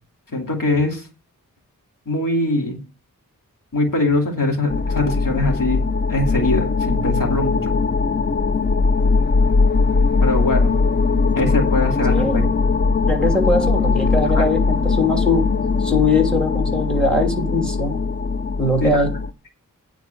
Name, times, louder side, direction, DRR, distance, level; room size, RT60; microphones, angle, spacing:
voice 1, 0.3-1.1 2.1-2.8 3.7-5.8 6.1-7.7 10.2-10.7 11.3-12.3 14.3-14.4 18.8-19.0, left 2 dB, 75° left, 1 dB, 2.5 m, -22 dB
sound 1, 4.7-19.3, left 4 dB, 35° left, 0.5 m, -20 dB
voice 2, 12.1-12.4 13.0-15.5 15.8-18.0 18.6-19.1, left 2 dB, 5° left, 3 dB, 2.9 m, -21 dB
9.2 x 4.6 x 7.5 m, 0.33 s
wide cardioid pair, 80°, 33 cm